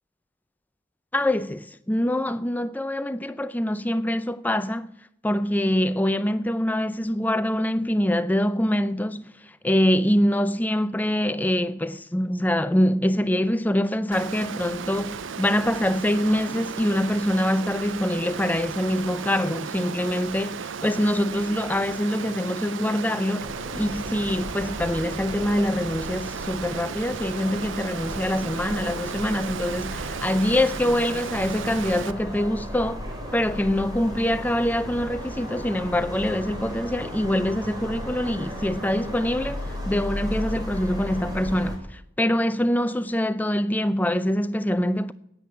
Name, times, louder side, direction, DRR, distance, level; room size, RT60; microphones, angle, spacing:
voice 1, 1.1-4.9 5.2-9.3 9.6-33.0 33.3-45.1, left 1 dB, 10° left, 0.4 m, -24 dB
Water, 14.1-32.1, right 6 dB, 65° right, 0.5 m, -35 dB
sound 1, 23.4-41.8, equal, 20° right, 2.9 m, -35 dB
9.9 x 8.6 x 9.5 m
head